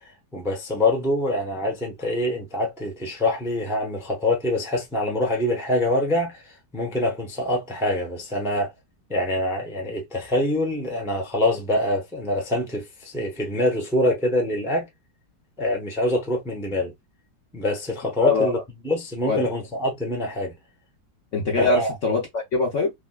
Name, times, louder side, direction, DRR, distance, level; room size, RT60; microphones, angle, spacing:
voice 1, 0.0-6.4 6.7-8.7 9.1-14.9 15.6-16.9 17.5-18.6 18.8-20.6 21.6-21.9, left 1 dB, 5° right, 0.5 m, -25 dB
voice 2, 18.2-18.6 19.3-19.5 21.3-22.9, left 3 dB, 60° left, 0.8 m, -23 dB
3.4 x 2.5 x 2.3 m
omnidirectional pair, 2.0 m